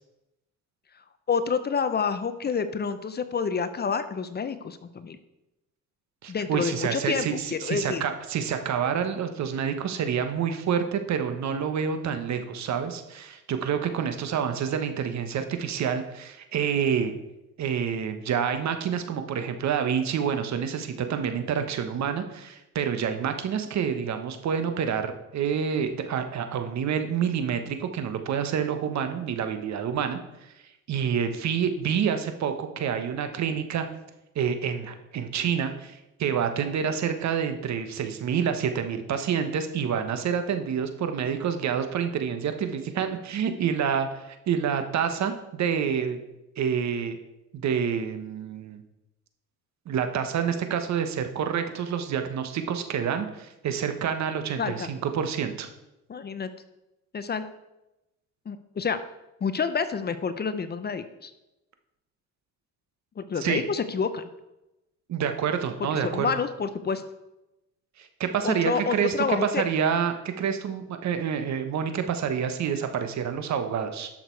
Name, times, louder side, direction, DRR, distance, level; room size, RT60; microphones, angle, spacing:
voice 1, 1.3-5.2 6.3-8.0 54.6-54.9 56.1-56.5 57.1-57.4 58.5-59.0 59.4-61.3 63.2-64.3 65.9-67.0 68.4-69.6, left 6 dB, 30° left, 11 dB, 0.7 m, -28 dB
voice 2, 6.2-17.1 17.6-30.5 30.9-33.8 34.3-46.2 46.6-47.2 47.5-48.8 49.9-55.7 63.4-63.6 65.1-66.3 68.0-74.1, right 7 dB, 60° right, 8 dB, 1.2 m, -28 dB
11.5 x 6.6 x 4.6 m, 0.93 s
cardioid pair, 115°, 31 cm